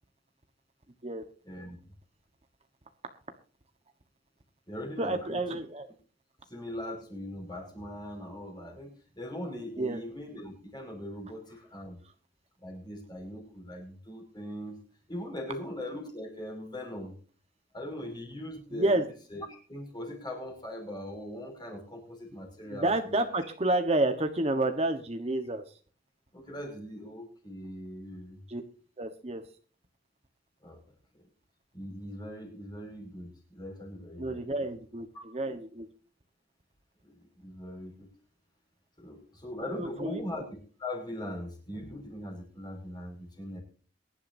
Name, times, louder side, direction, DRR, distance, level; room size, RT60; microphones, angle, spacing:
voice 1, 1.5-1.8 4.7-5.6 6.5-8.9 9.1-12.0 12.6-14.8 15.1-17.1 17.7-19.0 19.3-23.3 26.3-28.4 30.6-30.8 31.1-31.3 31.7-34.4 35.1-35.2 37.0-38.1 39.0-43.6, left 1 dB, 20° left, 3 dB, 5.5 m, -40 dB
voice 2, 5.0-5.9 9.8-10.0 18.7-19.0 22.7-25.8 28.5-28.6 29.0-29.4 34.2-35.9 39.7-40.1, right 2 dB, 30° right, 6 dB, 1.2 m, -29 dB
23.0 x 11.5 x 2.7 m, 0.40 s
head